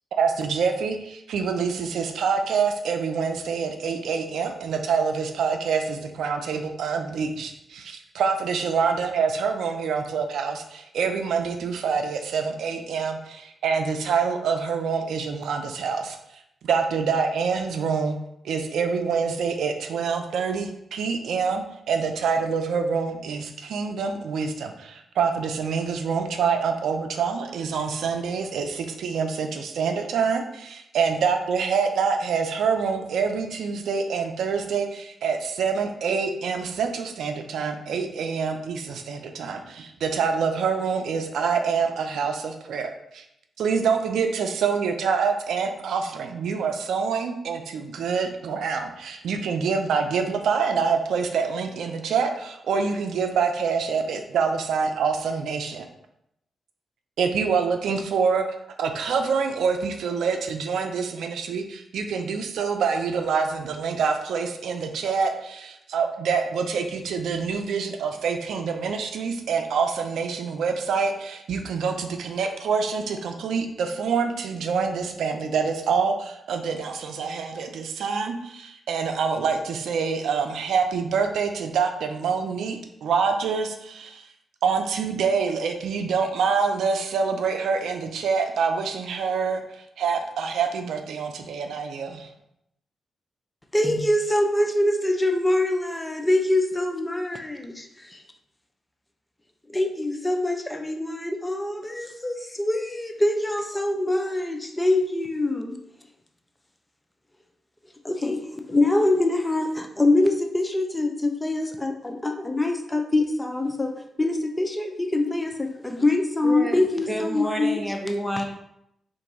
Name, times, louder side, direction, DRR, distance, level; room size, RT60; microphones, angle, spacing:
voice 1, 0.1-16.2 16.6-18.2 18.4-43.2 43.6-55.9 57.2-58.4 58.8-84.2 84.6-92.3, right 5 dB, 85° right, 0.4 m, -26 dB
voice 2, 93.7-98.2 99.7-105.8 108.0-117.8, left 2 dB, 15° left, 0.5 m, -24 dB
voice 3, 116.4-116.8 117.1-118.4, equal, ahead, 1.0 m, -29 dB
3.8 x 2.6 x 4.7 m
cardioid pair, 65°, 0 cm